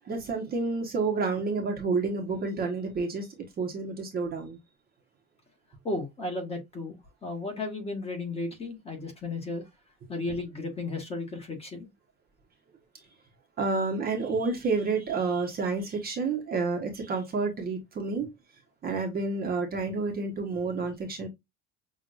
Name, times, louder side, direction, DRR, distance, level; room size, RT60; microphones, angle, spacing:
voice 1, 0.0-3.3 3.6-4.6 13.6-18.3 18.8-21.3, right 4 dB, 30° right, 1.0 m, -29 dB
voice 2, 5.8-9.6 10.1-11.9, left 2 dB, 20° left, 1.3 m, -34 dB
6.1 x 2.4 x 2.4 m
cardioid pair, 170°, 33 cm